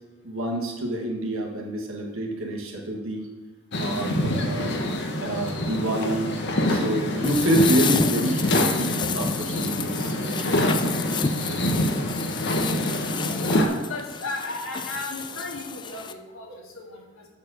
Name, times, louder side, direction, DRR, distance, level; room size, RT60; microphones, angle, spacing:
voice 1, 0.2-3.3 3.8-4.8 5.2-6.3 6.7-10.6, right 1 dB, 85° right, 0 dB, 1.6 m, -27 dB
sound 1, 3.7-13.7, left 1 dB, 55° left, 0.9 m, -26 dB
sound 2, 7.2-16.1, left 5 dB, 20° left, 0.3 m, -30 dB
voice 2, 12.3-12.9 13.2-17.3, left 2 dB, 80° left, -1 dB, 1.8 m, -35 dB
7.2 x 4.5 x 6.3 m, 1.2 s
head